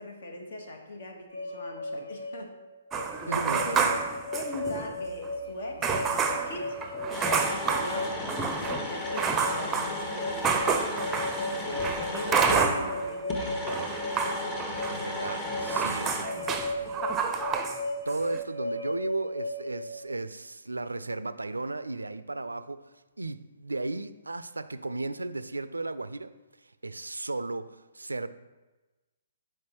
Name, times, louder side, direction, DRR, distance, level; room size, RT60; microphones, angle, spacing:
voice 1, 0.0-2.5 3.0-3.3 3.7-4.0 4.3-6.8 7.4-13.8, left 2 dB, 60° left, 1.2 m, -41 dB
sound 1, 1.3-20.1, left 1 dB, 85° left, 0.6 m, -36 dB
sound 2, 2.9-5.0 5.2-5.3 5.8-13.2 13.5-17.8 18.1-18.4, right 5 dB, 15° right, 0.6 m, -30 dB
voice 2, 3.3-4.0 14.9-17.3 18.1-22.8 23.2-26.3 26.8-28.3, right 2 dB, 90° right, 0.3 m, -35 dB
sound 3, 7.1-12.7 13.3-16.2, left 2 dB, 20° left, 0.9 m, -36 dB
7.7 x 4.5 x 2.9 m
figure-of-eight pair, 130°, 0 cm